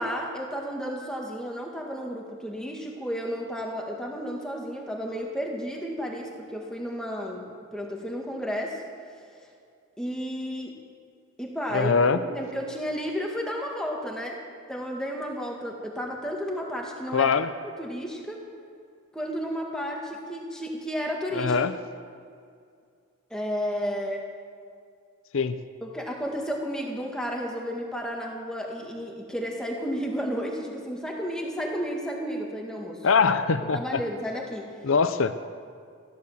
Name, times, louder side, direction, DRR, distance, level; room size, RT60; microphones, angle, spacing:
voice 1, 0.0-7.4 7.7-8.8 10.0-10.7 11.4-14.4 14.7-17.3 17.8-18.4 19.1-21.6 23.3-24.2 25.8-33.1 33.6-34.8, equal, 5° left, -1 dB, 2.0 m, -32 dB
voice 2, 11.7-12.2 17.1-17.5 21.3-21.7 25.3-25.6 33.0-34.0 34.8-35.5, left 5 dB, 75° left, 11 dB, 0.6 m, -23 dB
15.5 x 12.0 x 7.3 m, 2.3 s
head